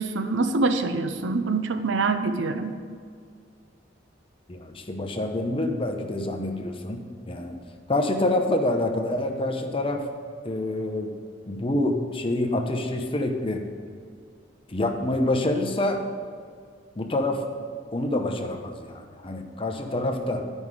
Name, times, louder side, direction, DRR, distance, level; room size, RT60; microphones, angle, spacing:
voice 1, 0.0-2.8, right 3 dB, 70° right, 9 dB, 0.6 m, -25 dB
voice 2, 4.5-7.6 7.9-10.0 10.4-11.1 11.5-13.6 14.7-16.0 17.0-17.4 17.9-20.4, left 1 dB, 30° left, 4 dB, 0.7 m, -27 dB
10.5 x 5.4 x 4.8 m, 2.1 s
head